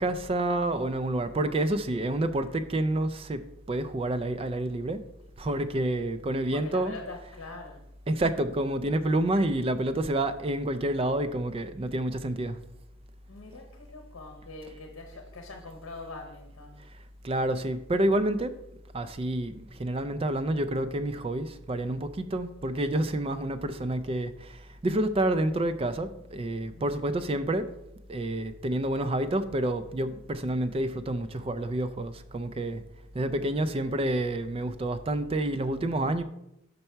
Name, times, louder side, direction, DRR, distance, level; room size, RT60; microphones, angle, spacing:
voice 1, 0.0-3.4 3.7-5.0 5.4-7.0 8.1-12.5 17.2-18.5 18.9-19.5 19.8-24.3 24.8-27.7 28.1-32.8 33.2-36.2, right 1 dB, 30° right, 0.3 m, -28 dB
voice 2, 6.5-7.8 13.3-16.8 26.7-27.0, left 3 dB, 90° left, 0.8 m, -44 dB
5.6 x 5.4 x 4.4 m
head